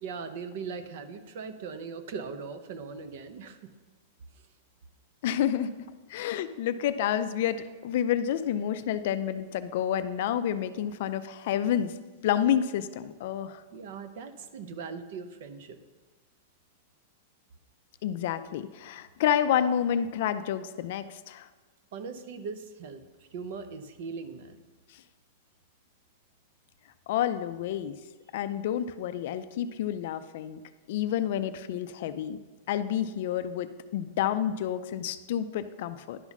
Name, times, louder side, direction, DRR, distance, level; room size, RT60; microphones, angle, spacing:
voice 1, 0.0-3.6 13.7-15.8 21.9-24.6, right 5 dB, 50° right, 9 dB, 0.7 m, -40 dB
voice 2, 5.2-5.7 6.1-12.0 12.2-13.6 18.0-21.5 24.9-25.0 27.1-28.0 28.3-30.6 30.9-32.4 32.7-36.2, left 10 dB, 50° left, 11 dB, 0.4 m, -29 dB
10.5 x 4.1 x 5.9 m, 1.3 s
supercardioid pair, 175°, 0 cm